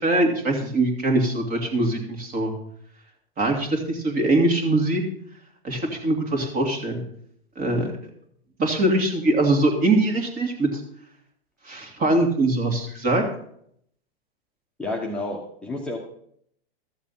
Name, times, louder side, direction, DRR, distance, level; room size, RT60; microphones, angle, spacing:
voice 1, 0.0-2.5 3.4-5.0 5.6-7.0 7.6-7.9 8.6-10.8 11.7-13.2, right 2 dB, 25° right, 3 dB, 2.4 m, -22 dB
voice 2, 14.8-16.0, left 2 dB, 5° left, -3 dB, 1.2 m, -30 dB
13.0 x 7.2 x 5.6 m, 0.67 s
hypercardioid pair, 135°, 31 cm